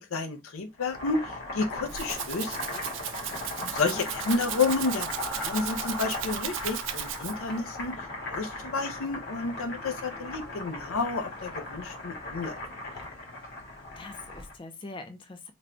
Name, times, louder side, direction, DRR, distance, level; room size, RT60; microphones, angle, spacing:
voice 1, 0.0-2.8 3.7-12.6, left 4 dB, 85° left, 0.5 m, -31 dB
Boiling, 0.7-14.6, left 2 dB, 55° left, 1.2 m, -38 dB
Rattle (instrument), 1.6-7.6, right 11 dB, 65° right, 0.4 m, -36 dB
sound 1, 1.8-10.7, equal, 5° right, 0.8 m, -44 dB
voice 2, 3.6-4.0 14.0-15.5, left 2 dB, 25° left, 0.4 m, -43 dB
3.4 x 2.2 x 3.7 m
head